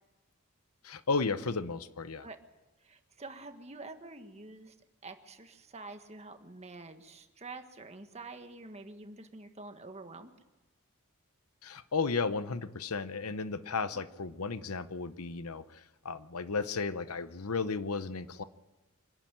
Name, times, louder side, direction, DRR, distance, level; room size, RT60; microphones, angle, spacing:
voice 1, 0.8-2.3 11.6-18.4, left 4 dB, 90° left, 13 dB, 0.9 m, -34 dB
voice 2, 2.8-4.7 5.0-10.3 13.9-14.1, right 3 dB, 30° right, 7 dB, 1.5 m, -47 dB
25.5 x 11.5 x 9.1 m, 1.1 s
head